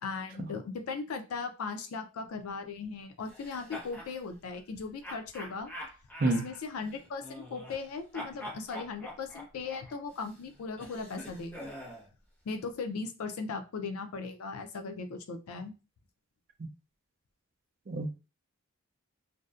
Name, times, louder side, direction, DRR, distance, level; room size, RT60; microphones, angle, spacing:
voice 1, 0.0-5.7 6.3-11.7 12.5-15.7, left 4 dB, 70° left, 7 dB, 0.4 m, -38 dB
sound 1, 3.3-4.1 5.0-7.9 8.1-12.1, left 1 dB, 10° left, 0.5 m, -45 dB
voice 2, 17.9-18.2, right 2 dB, 40° right, 5 dB, 0.4 m, -28 dB
2.6 x 2.1 x 2.3 m, 0.32 s
head